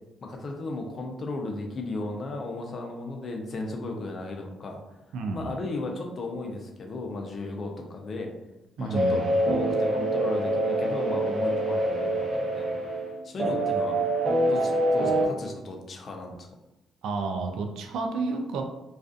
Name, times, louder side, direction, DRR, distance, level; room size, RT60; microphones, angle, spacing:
voice 1, 0.2-4.8 5.3-8.3 8.8-12.8 13.2-14.0 14.5-16.3, left 2 dB, 50° left, 2 dB, 0.5 m, -35 dB
voice 2, 5.1-5.5 8.8-9.3 17.0-18.6, right 3 dB, 80° right, 4 dB, 0.3 m, -30 dB
sound 1, 8.9-15.3, right 1 dB, 45° right, 0.7 m, -25 dB
2.4 x 2.4 x 2.4 m, 0.94 s
cardioid pair, 90°, 0 cm